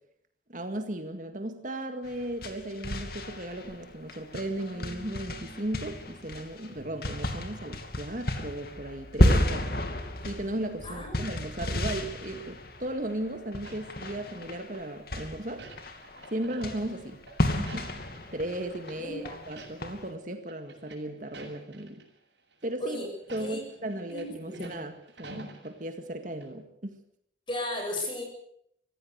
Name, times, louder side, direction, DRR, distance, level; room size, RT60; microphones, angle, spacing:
voice 1, 0.5-9.8 10.2-15.7 16.3-17.2 17.6-17.9 18.3-22.0 22.6-27.0, right 1 dB, 45° right, 6 dB, 2.1 m, -36 dB
sound 1, 2.0-20.1, left 1 dB, 55° left, 2.6 m, -32 dB
sound 2, 4.7-10.6, equal, 20° right, 3.3 m, -53 dB
voice 2, 10.8-11.2 19.0-19.5 22.8-23.1 23.4-23.6 24.1-24.8 27.5-28.2, left 1 dB, 25° left, 3 dB, 7.4 m, -35 dB
sound 3, 13.6-14.8 15.1-18.5 18.8-19.0 19.4-20.0 20.3-22.0 22.5-22.7 23.2-26.1 26.4-26.5, right 2 dB, 70° right, 7.8 m, -49 dB
24.0 x 15.5 x 8.2 m, 0.70 s
head